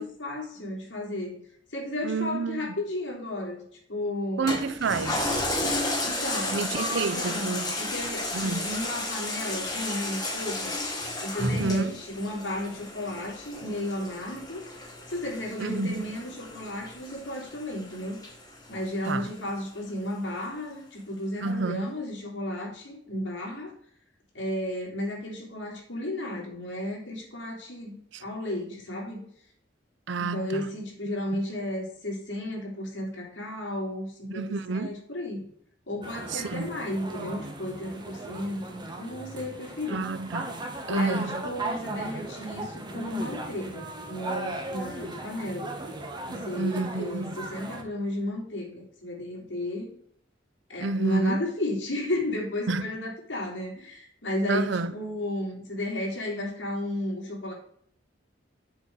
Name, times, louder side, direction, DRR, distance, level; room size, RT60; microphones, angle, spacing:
voice 1, 0.0-1.4 1.7-3.6 3.9-4.5 6.0-10.7 11.2-14.6 15.1-18.2 18.7-23.7 24.3-27.9 28.2-29.2 30.2-35.5 35.9-40.0 40.9-45.7 46.3-49.9 50.7-57.5, left 1 dB, 80° left, 3.2 m, -33 dB
voice 2, 2.0-2.7 4.4-5.4 6.5-7.8 8.3-8.7 11.4-12.0 15.6-16.0 19.0-19.3 21.4-21.9 28.1-28.2 30.1-30.6 31.3-31.4 34.3-35.0 36.3-36.7 39.9-40.5 40.9-41.4 46.6-47.4 50.8-51.4 52.7-52.8 54.5-54.9, right 3 dB, 70° right, 0.5 m, -30 dB
Toilet flush, 4.5-19.3 19.8-19.9, left 2 dB, 20° left, 2.7 m, -33 dB
sound 1, 36.0-47.8, right 2 dB, 25° right, 1.3 m, -37 dB
7.2 x 4.7 x 6.5 m
head